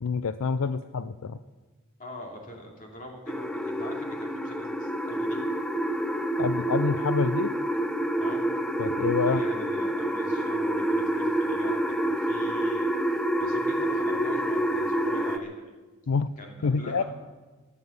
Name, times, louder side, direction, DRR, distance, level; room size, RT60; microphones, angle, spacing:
voice 1, 0.0-1.4 6.4-7.5 8.8-9.4 16.1-16.3 16.6-17.0, left 5 dB, 70° left, 12 dB, 0.5 m, -27 dB
voice 2, 2.0-5.4 8.2-8.5 9.2-15.8 16.4-17.0, equal, 35° left, 1 dB, 2.7 m, -44 dB
sound 1, 3.3-15.4, right 1 dB, 5° left, 0.6 m, -27 dB
14.5 x 10.5 x 8.0 m, 1.3 s
head